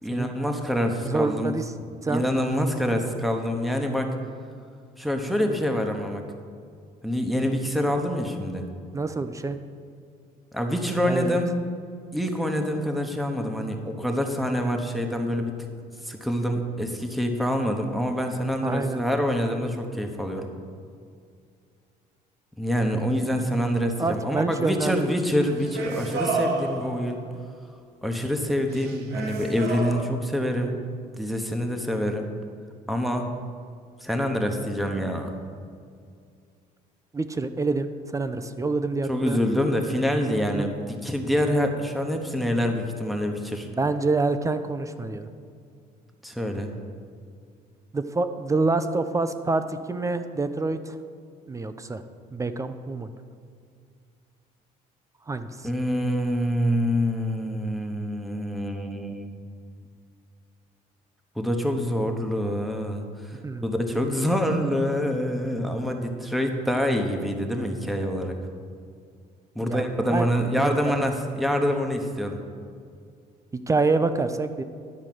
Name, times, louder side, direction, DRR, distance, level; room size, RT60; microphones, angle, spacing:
voice 1, 0.0-1.5 2.1-4.1 5.0-6.2 7.0-8.7 10.5-11.6 12.1-15.5 16.0-20.5 22.6-27.2 28.0-30.8 31.2-32.3 32.9-33.3 34.0-35.3 39.1-43.7 46.2-46.7 55.6-59.3 61.4-68.4 69.5-72.4, equal, ahead, 3 dB, 1.0 m, -26 dB
voice 2, 1.0-1.6 2.0-2.2 8.9-9.6 11.1-11.4 18.6-19.0 24.0-25.1 37.1-39.4 40.5-40.7 43.7-45.3 47.9-51.0 51.5-52.0 52.3-53.1 55.3-55.5 63.4-63.6 69.6-69.8 70.1-70.9 73.5-74.6, right 3 dB, 20° right, 10 dB, 0.5 m, -27 dB
sound 1, 25.5-27.3 28.7-30.0, right 3 dB, 75° right, 1.5 m, -30 dB
10.5 x 4.8 x 7.6 m, 2.3 s
cardioid pair, 110°, 17 cm